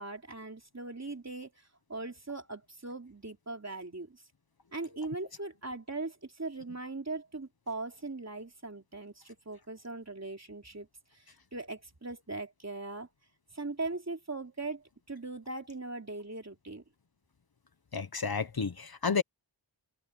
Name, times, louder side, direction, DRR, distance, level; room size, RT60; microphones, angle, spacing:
voice 1, 0.0-1.5 1.9-4.2 4.7-10.9 11.1-11.2 11.5-13.1 13.5-16.8, right 3 dB, 35° right, 3.3 m, -40 dB
voice 2, 17.9-19.2, left 5 dB, 50° left, 1.3 m, -31 dB
wide cardioid pair, 65°, 47 cm